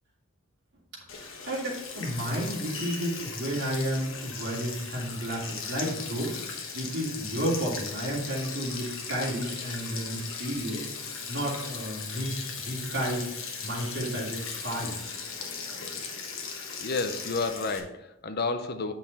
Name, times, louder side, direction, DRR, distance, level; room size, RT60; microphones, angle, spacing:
voice 1, 0.9-14.9, equal, 55° right, -3 dB, 2.7 m, -32 dB
Sink (filling or washing), 1.1-17.8, left 5 dB, 65° left, 1.3 m, -38 dB
voice 2, 16.8-18.9, left 3 dB, 50° left, 9 dB, 0.6 m, -30 dB
8.7 x 5.9 x 4.1 m, 0.88 s
head